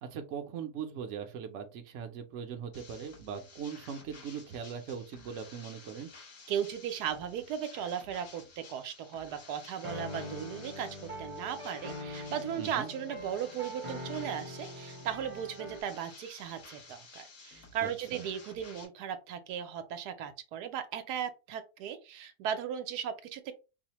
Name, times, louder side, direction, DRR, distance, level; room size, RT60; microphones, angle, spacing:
voice 1, 0.0-6.1 12.6-12.9 17.8-18.2, right 7 dB, 65° right, 5 dB, 0.8 m, -40 dB
sound 1, 2.7-18.9, left 4 dB, 65° left, 1.4 m, -53 dB
voice 2, 6.5-23.5, right 9 dB, 80° right, 8 dB, 1.1 m, -37 dB
sound 2, 9.8-15.8, left 1 dB, 35° right, 0.5 m, -43 dB
4.8 x 2.1 x 2.9 m, 0.30 s
omnidirectional pair, 1.7 m